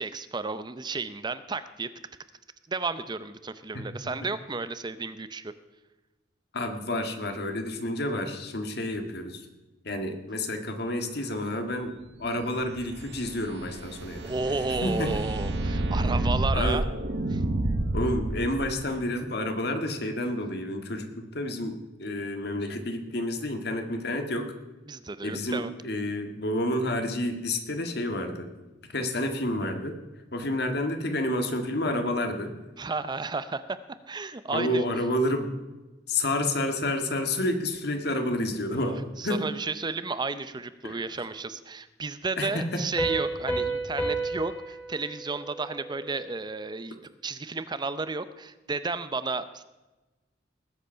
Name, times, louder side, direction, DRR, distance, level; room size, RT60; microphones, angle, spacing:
voice 1, 0.0-1.9 2.7-5.5 14.2-16.9 17.3-17.4 24.9-25.7 32.8-33.8 34.1-34.8 39.2-47.0 47.2-49.6, right 3 dB, 25° right, 13 dB, 0.6 m, -32 dB
voice 2, 3.7-4.1 6.5-9.4 9.8-11.9 12.2-14.2 14.8-15.2 16.5-16.8 17.9-24.5 25.2-28.5 28.9-30.0 30.3-32.5 34.5-35.5 36.1-39.5 40.8-41.0 42.4-42.9, left 1 dB, 65° left, 6 dB, 1.8 m, -29 dB
sound 1, 12.5-18.8, right 1 dB, 80° right, 1.1 m, -29 dB
Piano, 43.0-46.4, right 2 dB, 10° left, 2.4 m, -32 dB
19.5 x 8.0 x 5.7 m, 1.1 s
head